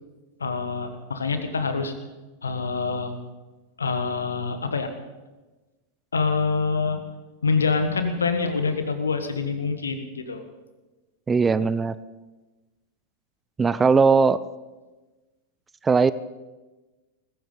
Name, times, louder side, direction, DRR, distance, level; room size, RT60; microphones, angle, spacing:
voice 1, 0.4-1.9 2.4-3.1 3.8-4.9 6.1-7.0 7.4-10.4, left 4 dB, 75° left, 8 dB, 1.5 m, -25 dB
voice 2, 11.3-12.0 13.6-14.4 15.8-16.1, right 5 dB, 15° right, 17 dB, 0.5 m, -19 dB
20.0 x 15.0 x 4.0 m, 1.2 s
figure-of-eight pair, 90°, 0 cm